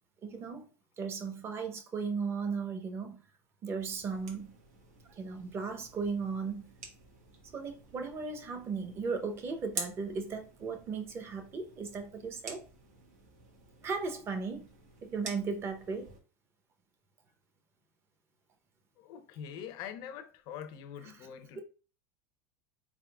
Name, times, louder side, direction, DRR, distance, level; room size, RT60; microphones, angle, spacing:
voice 1, 0.2-0.7 1.0-3.2 3.6-4.5 5.1-6.6 7.5-12.6 13.8-14.7 15.0-16.1 21.1-21.3 21.6-21.7, right 5 dB, 30° right, 0.8 m, -36 dB
sound 1, 3.8-16.2, right 4 dB, 90° right, 1.4 m, -49 dB
voice 2, 19.0-21.6, left 8 dB, 55° left, 0.6 m, -44 dB
4.2 x 3.6 x 2.3 m
supercardioid pair, 135°, 9 cm